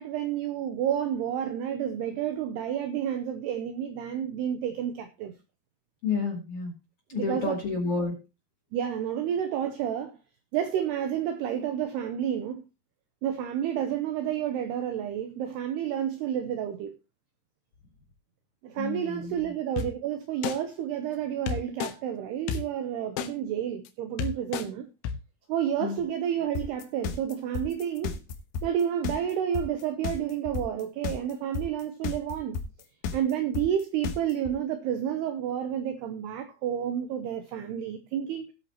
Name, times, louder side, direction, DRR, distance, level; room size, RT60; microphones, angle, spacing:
voice 1, 0.0-5.3 7.1-7.6 8.7-10.2 10.5-12.6 13.2-17.0 18.6-24.9 25.5-28.2 28.6-32.6 33.1-38.5, right 9 dB, 90° right, 2.3 m, -30 dB
voice 2, 6.0-6.7 7.1-8.1 18.8-19.5 25.8-26.0, left 4 dB, 40° left, 2.4 m, -30 dB
sound 1, 19.8-19.9 20.4-20.6 21.5-21.9 22.5-22.6 23.2-23.3 23.9-24.0 24.2-24.7 25.0-25.1, left 8 dB, 90° left, 3.8 m, -30 dB
sound 2, 26.5-34.5, left 6 dB, 70° left, 2.3 m, -32 dB
19.0 x 8.6 x 2.9 m
omnidirectional pair, 5.8 m